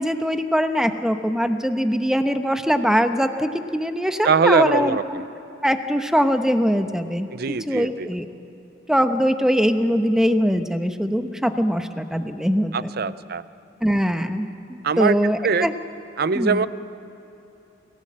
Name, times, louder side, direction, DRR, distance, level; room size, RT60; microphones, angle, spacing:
voice 1, 0.0-5.2 5.6-8.3 8.9-12.9 13.8-15.7 16.3-16.7, equal, 5° right, 7 dB, 1.0 m, -22 dB
voice 2, 4.2-5.2 7.3-8.2 12.7-13.4 14.8-15.2 15.4-15.7 16.2-16.7, right 5 dB, 55° right, 15 dB, 0.6 m, -22 dB
28.0 x 17.0 x 7.5 m, 3.0 s
head